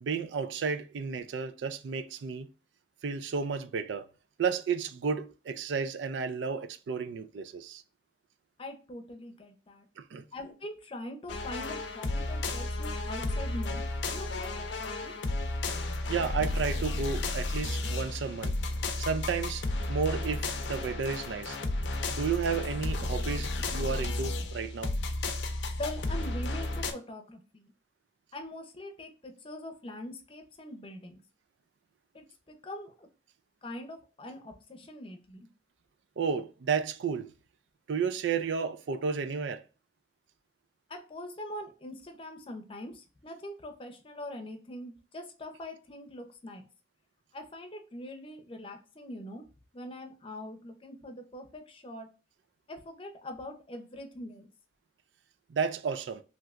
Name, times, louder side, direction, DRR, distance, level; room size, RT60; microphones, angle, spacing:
voice 1, 0.0-2.5 3.0-4.1 4.4-7.8 10.0-10.2 16.1-18.5 19.0-21.6 22.1-24.9 36.2-37.3 37.9-39.6 55.5-56.2, right 5 dB, 90° right, 0.4 m, -32 dB
voice 2, 8.6-9.9 10.3-13.8 14.1-15.1 25.8-27.7 28.3-31.1 32.1-33.1 33.6-35.5 40.9-46.6 47.3-49.4 49.7-52.1 52.7-54.5, left 1 dB, 30° left, 0.6 m, -43 dB
sound 1, 11.3-26.9, left 2 dB, 80° left, 0.5 m, -33 dB
3.2 x 2.8 x 2.4 m
head